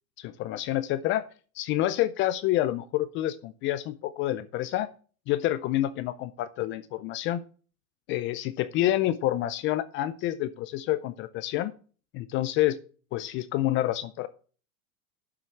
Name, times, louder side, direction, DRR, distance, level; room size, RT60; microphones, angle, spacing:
voice 1, 0.2-1.3 1.6-4.9 5.3-7.4 8.1-11.7 12.1-12.8 13.1-14.3, left 14 dB, 30° left, 14 dB, 0.4 m, -28 dB
7.6 x 5.9 x 7.5 m, 0.40 s
hypercardioid pair, 115°, 45 cm